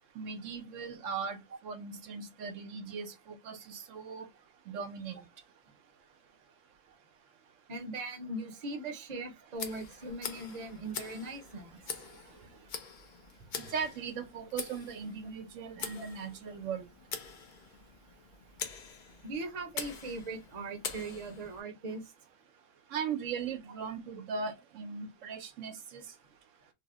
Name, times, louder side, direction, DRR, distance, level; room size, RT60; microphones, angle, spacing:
voice 1, 0.2-4.3 4.7-5.2 13.7-16.9 22.9-26.0, right 6 dB, 80° right, 1.0 m, -38 dB
voice 2, 7.7-11.8 13.6-13.7 16.0-16.1 19.2-22.1, right 2 dB, 40° right, 0.7 m, -40 dB
Tick, 9.5-21.6, left 6 dB, 55° left, 0.5 m, -44 dB
2.8 x 2.0 x 3.5 m
omnidirectional pair, 1.3 m